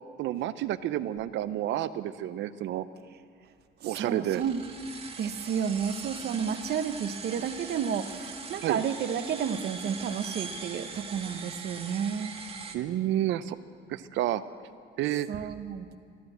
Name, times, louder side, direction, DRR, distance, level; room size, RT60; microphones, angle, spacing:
voice 1, 0.2-2.9 3.8-4.4 8.6-8.8 12.7-13.6 13.9-14.4 15.0-15.3, right 13 dB, 75° right, 13 dB, 0.6 m, -30 dB
voice 2, 3.8-4.7 5.2-12.4 15.3-16.0, right 7 dB, 55° right, 9 dB, 1.0 m, -31 dB
sound 1, 4.3-12.8, right 4 dB, 30° right, 1.4 m, -41 dB
14.5 x 12.0 x 7.9 m, 2.5 s
cardioid pair, 125°, 19 cm